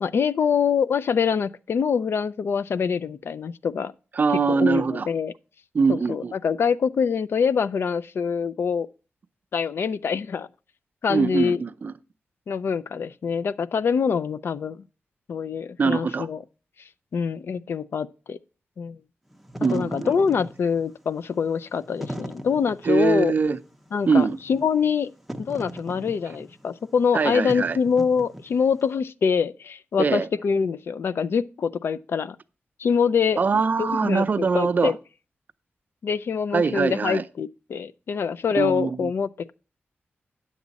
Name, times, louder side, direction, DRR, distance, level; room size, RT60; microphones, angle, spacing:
voice 1, 0.0-3.9 4.5-5.3 5.9-8.9 9.5-10.5 11.0-11.6 12.5-14.8 15.3-16.4 17.1-18.4 18.8-19.0 19.7-23.3 23.9-25.1 25.4-32.4 32.8-33.4 33.8-35.0 36.0-39.5, left 6 dB, 65° left, 0.4 m, -25 dB
voice 2, 4.2-5.1 5.7-6.3 11.1-11.9 15.8-16.3 19.6-20.1 22.8-23.6 24.1-24.4 27.1-27.8 30.0-30.3 33.4-34.9 36.5-37.2 38.5-39.1, right 5 dB, 45° right, 0.5 m, -22 dB
Wind / Fire, 19.3-28.8, equal, ahead, 0.6 m, -39 dB
9.5 x 7.2 x 4.0 m
wide cardioid pair, 155°, 4 cm